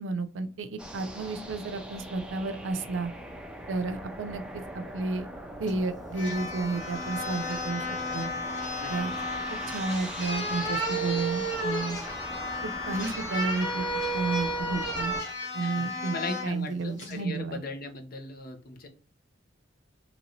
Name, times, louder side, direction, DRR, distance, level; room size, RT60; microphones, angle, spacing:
voice 1, 0.0-3.1 3.7-5.3 5.6-7.9 8.1-8.3 8.9-9.1 9.5-12.0 12.6-13.8 14.1-15.1 15.5-16.1 16.4-17.6, right 3 dB, 80° right, 9 dB, 0.4 m, -32 dB
sound 1, 0.8-15.2, right 1 dB, 5° right, 0.5 m, -41 dB
sound 2, 5.7-5.8 6.1-16.5 17.0-17.2, equal, 85° left, 1.3 m, -33 dB
voice 2, 15.6-18.9, left 3 dB, 50° left, 5 dB, 0.6 m, -38 dB
3.0 x 2.6 x 3.0 m, 0.37 s
head